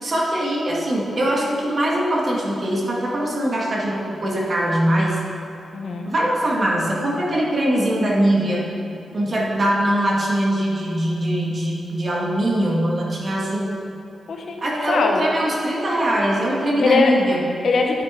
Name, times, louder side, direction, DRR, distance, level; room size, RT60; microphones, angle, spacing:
voice 1, 0.0-5.2 6.1-8.7 9.1-13.8 14.6-17.5, right 1 dB, 35° right, -3 dB, 1.7 m, -22 dB
voice 2, 5.7-6.1 14.3-15.2 16.8-17.1 17.6-18.0, left 5 dB, 60° left, 2 dB, 1.0 m, -21 dB
9.9 x 9.2 x 3.7 m, 2.7 s
wide cardioid pair, 150°, 0 cm